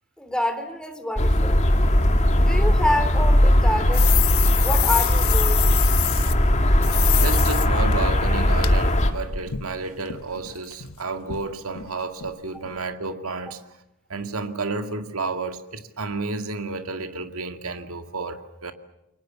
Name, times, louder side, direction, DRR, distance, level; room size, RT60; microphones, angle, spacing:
voice 1, 0.2-1.6 2.4-4.1 4.6-5.7, left 1 dB, 5° left, 2.9 m, -27 dB
sound 1, 1.2-9.1, left 1 dB, 35° left, 2.1 m, -19 dB
sound 2, 3.9-6.3 6.8-7.7 7.9-8.0 8.6-8.7 9.0-11.0 11.3-11.5 11.8-11.9 12.2-12.3 12.7-12.8, left 14 dB, 75° left, 1.3 m, -27 dB
voice 2, 7.1-13.6 14.1-18.7, right 3 dB, 85° right, 2.2 m, -31 dB
29.0 x 24.0 x 7.2 m
head